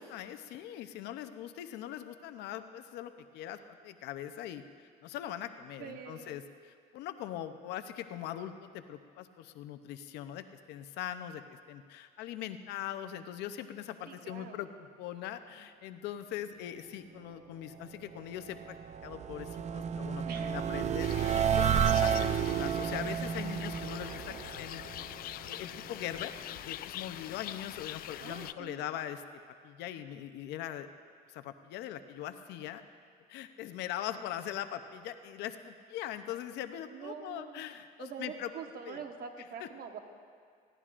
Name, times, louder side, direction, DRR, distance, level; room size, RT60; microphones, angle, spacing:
voice 1, 0.0-18.8 19.0-21.7 22.0-25.2 25.5-30.9 31.3-32.8 33.3-38.5 38.8-39.0 39.6-39.7, left 11 dB, 85° left, 9 dB, 0.7 m, -41 dB
voice 2, 5.8-6.4 14.1-14.6 20.2-20.6 24.1-24.4 28.2-28.8 36.9-37.7 38.0-40.0, right 6 dB, 60° right, 4 dB, 1.3 m, -45 dB
sound 1, 18.2-25.4, right 8 dB, 40° right, 0.5 m, -31 dB
sound 2, 21.0-28.5, left 13 dB, 60° left, 0.4 m, -43 dB
21.0 x 16.5 x 2.5 m, 2.1 s
cardioid pair, 110°, 17 cm